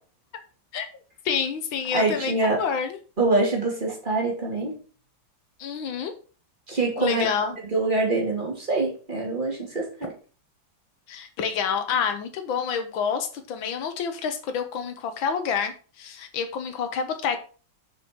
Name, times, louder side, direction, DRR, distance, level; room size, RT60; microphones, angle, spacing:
voice 1, 1.3-3.0 5.6-6.1 7.0-7.5 11.1-17.4, left 6 dB, 90° left, 7 dB, 1.8 m, -28 dB
voice 2, 1.9-2.6 3.2-4.8 6.7-7.3 7.7-10.1, right 3 dB, 25° right, -2 dB, 2.9 m, -25 dB
6.9 x 6.4 x 4.6 m, 0.38 s
omnidirectional pair, 2.1 m